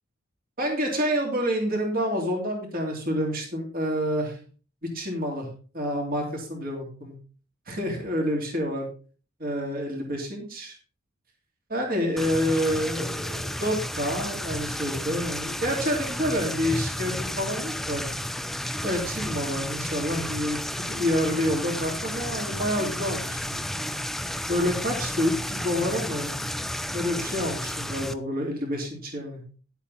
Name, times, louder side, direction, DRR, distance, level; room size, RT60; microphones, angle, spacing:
voice 1, 0.6-4.4 4.9-5.5 5.7-7.1 7.7-8.9 9.4-10.8 11.7-18.0 18.8-23.6 24.5-26.4 26.9-29.6, equal, 45° right, 1 dB, 3.0 m, -28 dB
sound 1, 12.2-28.1, left 1 dB, ahead, 0.5 m, -32 dB
11.0 x 8.1 x 4.2 m, 0.40 s
head